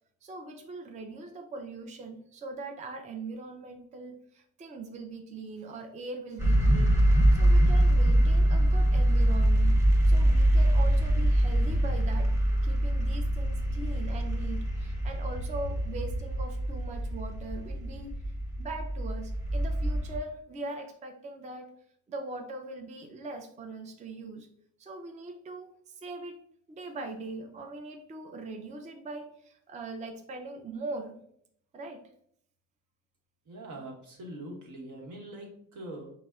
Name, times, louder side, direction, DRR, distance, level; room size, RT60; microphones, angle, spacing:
voice 1, 0.2-7.0 7.3-9.8 10.0-12.4 12.6-21.7 22.1-24.5 24.8-26.4 26.7-31.2 31.7-32.1, right 2 dB, 25° right, 4 dB, 0.4 m, -41 dB
sound 1, 6.4-20.2, right 1 dB, 10° right, 0.8 m, -24 dB
voice 2, 33.5-36.1, right 1 dB, 75° right, -1 dB, 1.1 m, -43 dB
5.3 x 2.0 x 2.3 m, 0.67 s
cardioid pair, 90°, 30 cm